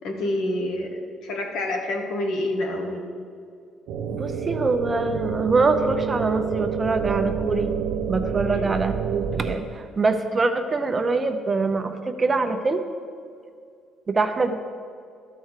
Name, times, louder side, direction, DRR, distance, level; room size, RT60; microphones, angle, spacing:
voice 1, 0.0-3.0 8.4-8.7, left 1 dB, 70° left, 3 dB, 1.4 m, -28 dB
sound 1, 3.9-9.6, right 7 dB, 80° right, 0.7 m, -28 dB
voice 2, 4.1-7.7 8.1-12.8 14.1-14.5, right 3 dB, 25° right, 7 dB, 0.6 m, -24 dB
13.0 x 4.6 x 6.5 m, 2.3 s
cardioid pair, 135°, 0 cm